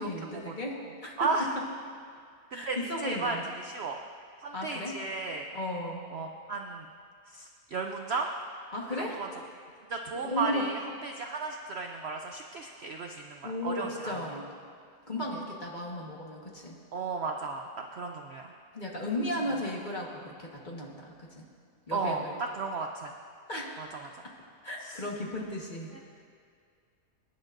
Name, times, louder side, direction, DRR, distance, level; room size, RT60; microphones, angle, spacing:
voice 1, 0.0-1.3 2.5-3.4 4.5-5.0 5.5-6.1 8.7-9.2 10.1-10.7 13.4-14.5 15.1-16.8 18.7-21.4 21.9-22.4 23.5-23.8 24.6-25.9, left 1 dB, 30° left, -2 dB, 1.5 m, -35 dB
voice 2, 1.2-1.5 2.5-4.0 4.4-5.5 6.1-6.9 7.3-8.3 9.0-9.3 9.9-14.2 16.9-18.5 21.9-23.1 23.8-24.1 24.8-25.0, right 4 dB, 60° right, 3 dB, 0.7 m, -34 dB
24.0 x 10.5 x 2.6 m, 2.2 s
omnidirectional pair, 1.6 m